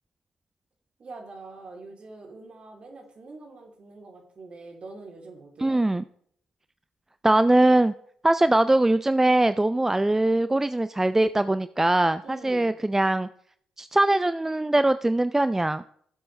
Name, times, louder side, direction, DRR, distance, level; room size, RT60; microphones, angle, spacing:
voice 1, 1.0-5.8 12.2-12.7, right 3 dB, 45° right, 2 dB, 3.2 m, -44 dB
voice 2, 5.6-6.0 7.2-7.9 8.2-13.3 13.8-15.8, right 2 dB, 15° right, 13 dB, 0.5 m, -21 dB
16.5 x 7.7 x 3.3 m, 0.65 s
hypercardioid pair, 40°, 2 cm